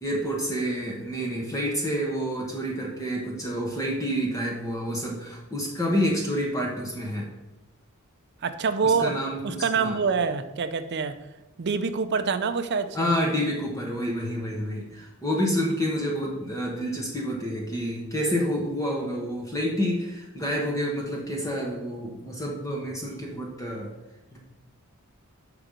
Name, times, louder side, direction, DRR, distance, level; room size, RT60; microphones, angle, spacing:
voice 1, 0.0-7.3 8.8-9.4 9.7-10.0 12.9-23.9 24.3-24.4, equal, 15° left, -2 dB, 1.0 m, -28 dB
voice 2, 8.4-9.1 9.4-11.1 11.6-13.1, right 5 dB, 50° right, 10 dB, 0.5 m, -26 dB
5.9 x 4.9 x 5.1 m, 1.0 s
head